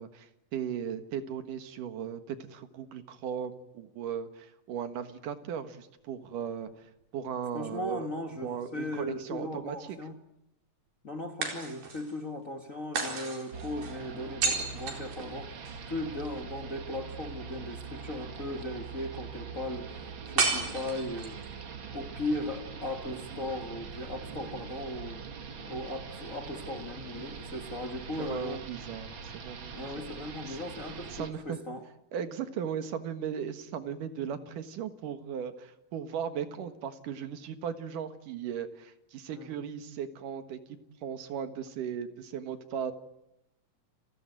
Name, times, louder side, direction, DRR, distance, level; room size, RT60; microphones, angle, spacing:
voice 1, 0.0-8.1 8.4-10.0 28.2-30.1 30.5-30.6 31.1-31.6 32.1-42.9, right 8 dB, 65° right, 3.0 m, -37 dB
voice 2, 7.5-10.2 11.0-15.5 15.9-21.4 21.9-25.2 25.6-28.7 29.7-31.8 39.3-39.7, left 1 dB, 60° left, 0.8 m, -37 dB
sound 1, 8.3-9.4 11.4-12.2 12.9-15.8 20.4-21.5, right 4 dB, 90° right, 6.2 m, -33 dB
sound 2, 13.5-31.3, right 5 dB, 45° right, 1.9 m, -43 dB
30.0 x 19.0 x 9.3 m
omnidirectional pair, 4.2 m